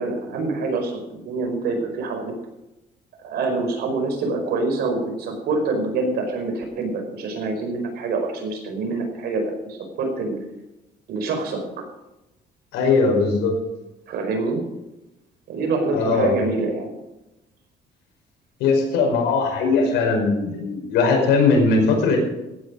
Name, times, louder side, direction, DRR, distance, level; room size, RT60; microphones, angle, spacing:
voice 1, 0.0-2.3 3.2-10.3 11.1-11.6 14.1-14.6 15.5-16.9, right 3 dB, 70° right, 3 dB, 4.9 m, -26 dB
voice 2, 12.7-13.5 15.9-16.4 18.6-22.2, left 4 dB, 90° left, 1 dB, 5.2 m, -19 dB
15.5 x 9.9 x 5.2 m, 0.94 s
cardioid pair, 110°, 17 cm